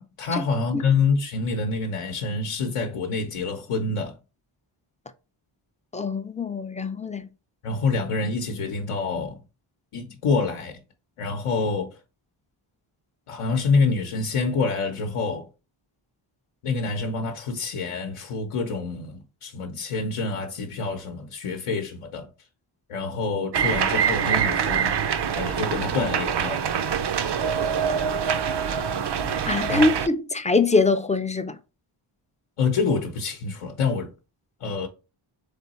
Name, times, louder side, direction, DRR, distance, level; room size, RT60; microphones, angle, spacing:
voice 1, 0.0-4.2 7.6-9.4 9.9-10.8 11.2-12.0 13.3-15.5 16.6-22.3 22.9-24.9 25.4-26.7 29.7-29.9 32.6-34.1 34.6-34.9, left 4 dB, 85° left, 0.8 m, -26 dB
voice 2, 5.9-7.3 29.5-31.6, left 3 dB, 15° left, 0.3 m, -23 dB
sound 1, 23.5-30.1, right 7 dB, 55° right, 0.6 m, -25 dB
3.7 x 3.5 x 4.1 m
wide cardioid pair, 105°, 50 cm